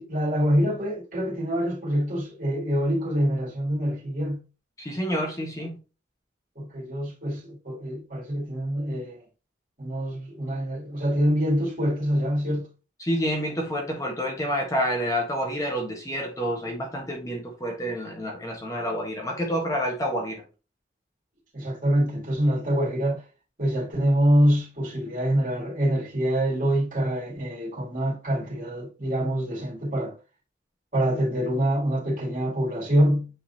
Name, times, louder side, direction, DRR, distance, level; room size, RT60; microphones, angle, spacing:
voice 1, 0.0-4.4 6.6-9.2 9.8-12.7 21.5-23.2 23.6-30.1 30.9-33.3, equal, 45° right, 2.7 m, -25 dB
voice 2, 4.8-5.8 13.0-20.4, equal, 15° left, 1.2 m, -28 dB
8.8 x 3.8 x 2.8 m
head